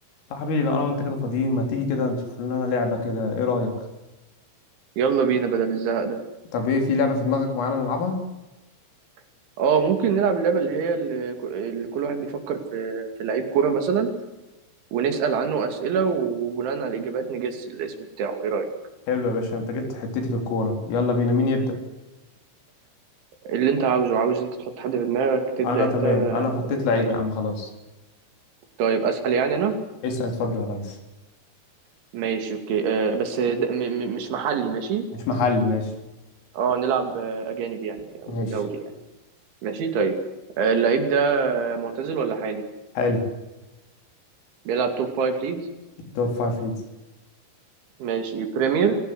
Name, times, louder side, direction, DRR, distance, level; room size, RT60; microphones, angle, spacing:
voice 1, 0.3-3.8 6.5-8.2 19.1-21.8 25.6-27.7 30.0-31.0 35.3-35.9 38.3-38.6 43.0-43.3 46.2-46.8, left 3 dB, 80° left, 4 dB, 6.5 m, -24 dB
voice 2, 5.0-6.2 9.6-14.1 14.9-18.7 23.4-27.1 28.8-29.8 32.1-35.1 36.5-38.9 39.6-40.2 40.6-42.6 44.7-45.6 48.0-49.0, right 6 dB, 70° right, 6 dB, 4.9 m, -24 dB
27.5 x 17.5 x 8.0 m, 1.1 s
omnidirectional pair, 5.8 m